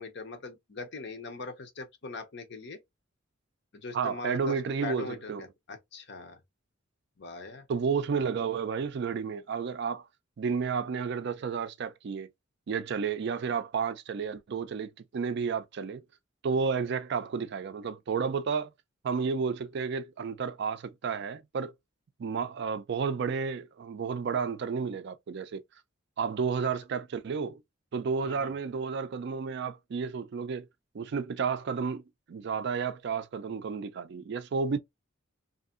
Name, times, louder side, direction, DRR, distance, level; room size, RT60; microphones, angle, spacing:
voice 1, 0.0-2.8 3.7-4.6 4.8-6.4 7.2-7.7 28.2-28.5, left 3 dB, 60° left, 0.7 m, -41 dB
voice 2, 3.9-5.4 7.7-10.1 10.4-12.3 12.7-16.0 16.4-18.7 19.0-21.7 22.2-25.6 26.2-27.6 27.9-30.7 30.9-32.0 32.3-34.8, right 5 dB, 55° right, 0.4 m, -31 dB
2.7 x 2.6 x 2.4 m
head